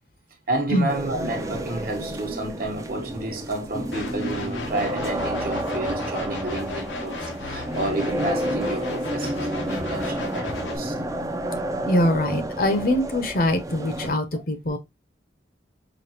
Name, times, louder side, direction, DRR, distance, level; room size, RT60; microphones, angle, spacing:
voice 1, 0.5-10.9 14.3-14.4, right 2 dB, 50° right, 1.0 m, -30 dB
sound 1, 0.9-14.1, right 1 dB, 20° right, 0.4 m, -30 dB
sound 2, 3.9-10.8, left 4 dB, 90° left, 0.9 m, -35 dB
voice 2, 11.8-14.8, left 1 dB, 50° left, 0.7 m, -23 dB
5.0 x 2.4 x 2.8 m
head